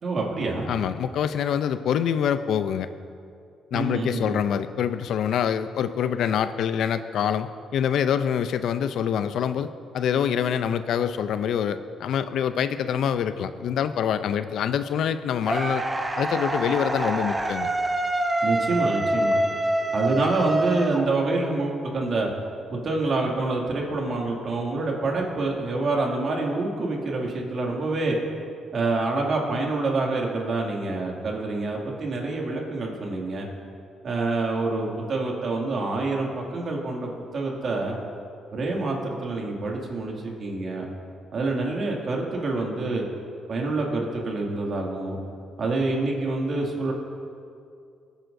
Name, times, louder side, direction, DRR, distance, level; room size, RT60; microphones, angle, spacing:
voice 1, 0.0-0.7 3.7-4.4 18.4-19.4 19.9-22.3 22.7-28.2 28.7-33.5 34.0-38.0 38.5-40.9 41.3-43.0 43.5-45.2 45.6-46.9, right 3 dB, 50° right, -1 dB, 2.3 m, -27 dB
voice 2, 0.7-2.9 3.7-9.7 9.9-15.8 16.2-17.7, left 8 dB, 75° left, 12 dB, 0.4 m, -25 dB
sound 1, 15.4-21.5, right 1 dB, 20° right, 0.9 m, -26 dB
20.0 x 9.1 x 2.6 m, 2.4 s
cardioid pair, 90°, 0 cm